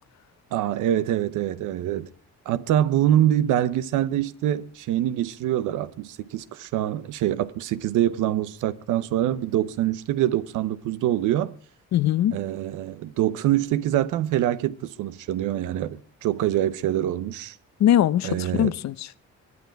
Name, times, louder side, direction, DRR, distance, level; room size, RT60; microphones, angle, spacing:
voice 1, 0.5-2.1 2.5-11.5 12.3-17.6 18.2-18.7, right 12 dB, 90° right, 0.9 m, -25 dB
voice 2, 11.9-12.4 17.8-19.2, left 11 dB, 65° left, 0.7 m, -21 dB
23.5 x 9.5 x 4.6 m
cardioid pair, 90°, 30 cm